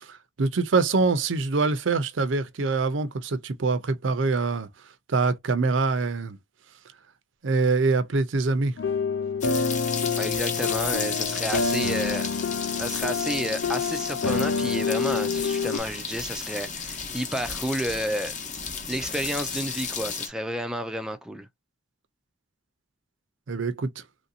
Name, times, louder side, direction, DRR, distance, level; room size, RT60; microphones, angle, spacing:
voice 1, 0.1-4.7 5.1-6.4 7.4-8.8 23.5-23.9, right 3 dB, 80° right, 0.6 m, -24 dB
sound 1, 8.8-15.8, left 5 dB, 75° left, 0.4 m, -27 dB
sound 2, 9.4-20.3, left 6 dB, 40° left, 0.8 m, -33 dB
voice 2, 10.2-12.3 12.8-18.3 18.9-21.5, equal, 5° right, 0.3 m, -31 dB
3.1 x 2.6 x 2.6 m
head